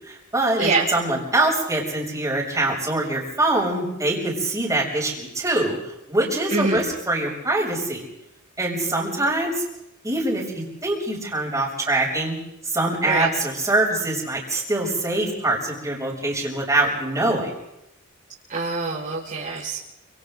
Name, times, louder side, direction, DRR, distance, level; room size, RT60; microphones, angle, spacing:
voice 1, 0.0-5.8 6.1-8.0 8.6-9.5 10.0-12.4 12.6-17.5, right 2 dB, 15° right, -3 dB, 7.3 m, -24 dB
voice 2, 6.5-6.9 13.0-13.3 18.5-19.8, right 3 dB, 40° right, -8 dB, 5.5 m, -24 dB
29.5 x 28.0 x 4.0 m, 0.86 s
head